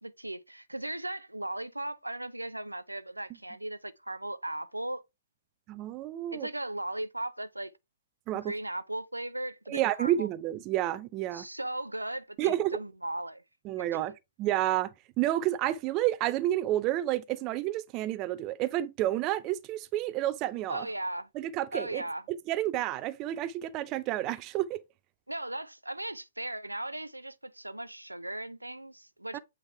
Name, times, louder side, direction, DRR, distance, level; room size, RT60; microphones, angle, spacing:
voice 1, 0.0-5.0 6.3-7.7 8.3-10.3 11.3-13.4 13.8-14.2 20.7-21.3 21.7-22.2 25.3-29.4, right 1 dB, 85° right, 0.5 m, -37 dB
voice 2, 5.7-6.5 8.3-8.5 9.7-11.4 12.4-12.8 13.7-14.1 14.4-14.9 15.2-20.8 21.4-22.0 22.5-24.8 29.3-29.4, right 14 dB, 25° right, 0.4 m, -30 dB
7.9 x 3.5 x 3.4 m
figure-of-eight pair, 120°, 0 cm